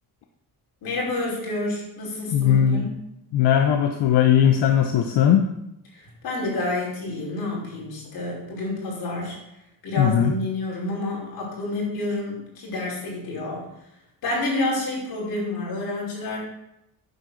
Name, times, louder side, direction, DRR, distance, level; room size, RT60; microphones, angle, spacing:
voice 1, 0.8-2.9 5.9-9.4 9.8-13.7 14.2-16.4, left 2 dB, 60° left, -4 dB, 5.5 m, -29 dB
voice 2, 2.3-2.9 3.3-5.5 10.0-10.3, left 9 dB, 90° left, 5 dB, 1.0 m, -19 dB
9.8 x 7.9 x 6.4 m, 0.84 s
cardioid pair, 160°, 40 cm